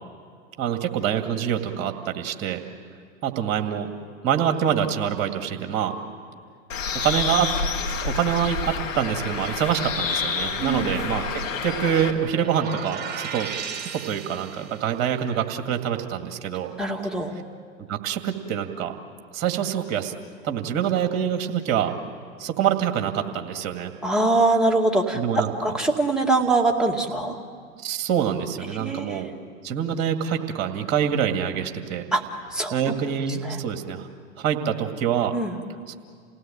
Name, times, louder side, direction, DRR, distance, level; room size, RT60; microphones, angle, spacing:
voice 1, 0.6-2.6 3.2-3.9 4.2-6.0 6.9-7.5 8.0-13.5 13.8-16.7 17.9-18.9 19.3-20.1 20.4-21.9 22.4-23.9 25.1-25.5 27.8-29.3 29.6-32.0 32.7-34.1 34.4-35.3, right 9 dB, 40° right, 5 dB, 2.2 m, -25 dB
Bird, 6.7-12.1, left 5 dB, 75° left, 2.5 m, -28 dB
sound 1, 12.1-14.9, right 6 dB, 25° right, 2.8 m, -35 dB
voice 2, 16.8-17.4 24.0-27.4 28.8-29.2 32.1-32.2 32.5-32.7 33.4-33.6 35.3-35.5, right 2 dB, ahead, 0 dB, 2.3 m, -23 dB
28.5 x 17.5 x 8.8 m, 2.1 s
hypercardioid pair, 105°, 39 cm